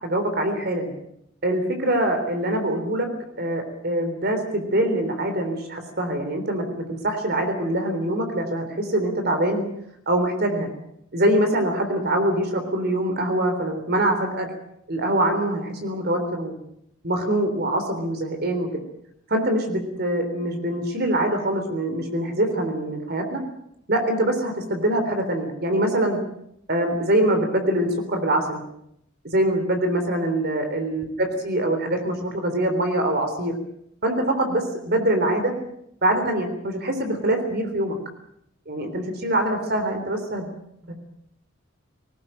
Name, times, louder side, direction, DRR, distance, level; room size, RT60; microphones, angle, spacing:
voice 1, 0.0-0.9 1.4-3.1 3.4-9.7 10.1-10.7 11.1-14.5 14.9-16.6 17.0-18.7 19.3-23.4 23.9-26.2 26.7-28.6 29.3-33.5 34.0-35.5 36.0-38.0 38.7-40.6 40.9-41.0, right 1 dB, 50° right, 5 dB, 3.7 m, -24 dB
20.0 x 19.5 x 8.9 m, 0.76 s
head